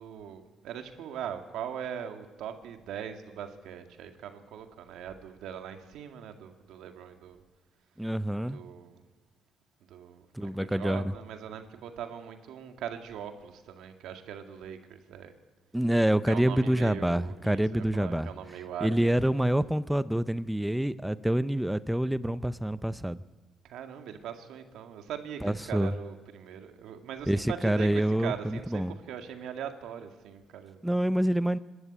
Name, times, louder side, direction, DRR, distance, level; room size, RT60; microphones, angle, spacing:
voice 1, 0.0-7.4 8.5-9.0 9.9-15.3 16.3-19.4 23.6-30.8, right 8 dB, 85° right, 6 dB, 2.0 m, -41 dB
voice 2, 8.0-8.6 10.3-11.0 15.7-18.3 18.8-23.2 25.4-25.9 27.3-29.0 30.8-31.6, right 1 dB, 5° right, 15 dB, 0.6 m, -27 dB
26.0 x 12.5 x 8.7 m, 1.3 s
cardioid pair, 90°, 0 cm